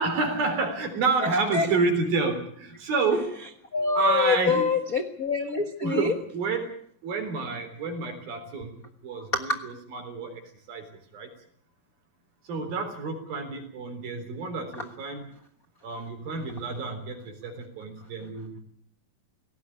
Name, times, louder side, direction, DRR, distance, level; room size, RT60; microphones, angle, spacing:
voice 1, 0.0-3.4 4.0-4.7 5.8-6.7 7.0-8.7 9.0-10.4 10.7-10.9 11.1-11.3 12.5-15.3 15.8-17.2 17.4-18.6, right 4 dB, 85° right, 4 dB, 5.6 m, -29 dB
voice 2, 3.7-6.1, left 5 dB, 55° left, 7 dB, 0.9 m, -25 dB
19.0 x 17.5 x 9.9 m, 0.63 s
omnidirectional pair, 4.1 m